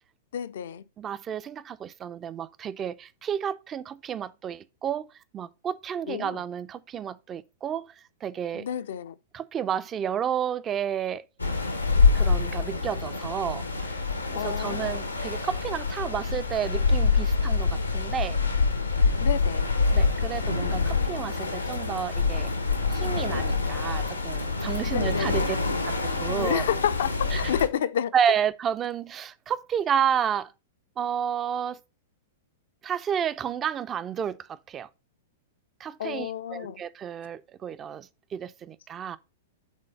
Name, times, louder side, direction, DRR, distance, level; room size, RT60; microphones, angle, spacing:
voice 1, 0.3-0.8 6.1-6.4 8.5-9.2 14.3-15.0 19.2-19.8 24.8-25.5 26.3-28.1 36.0-36.8, left 9 dB, 60° left, 0.5 m, -30 dB
voice 2, 1.0-5.1 5.3-7.9 8.2-8.7 9.3-11.3 12.1-13.7 14.3-18.4 19.9-22.5 22.9-25.6 25.8-25.9 26.2-26.6 27.3-27.4 28.1-30.5 31.0-31.8 32.8-34.9 35.8-39.2, right 8 dB, 25° right, 0.4 m, -31 dB
sound 1, 11.4-27.7, left 4 dB, 90° left, 1.0 m, -26 dB
6.4 x 3.8 x 5.0 m
figure-of-eight pair, 105°, 0 cm